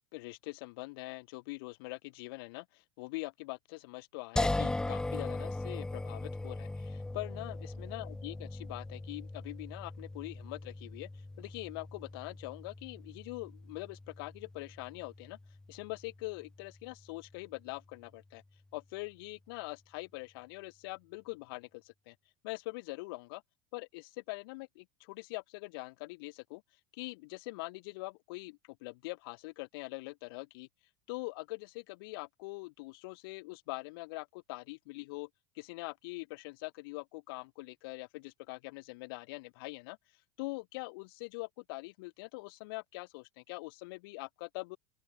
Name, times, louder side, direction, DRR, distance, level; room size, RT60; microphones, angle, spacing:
voice 1, 0.1-11.1 11.4-15.4 15.7-18.4 18.7-22.1 22.4-23.4 23.7-26.6 26.9-30.7 31.1-35.3 35.5-40.0 40.4-44.8, left 24 dB, 65° left, 0.8 m, -43 dB
sound 1, 4.4-17.4, left 2 dB, 5° left, 0.7 m, -39 dB
open air
supercardioid pair, 140°, 13 cm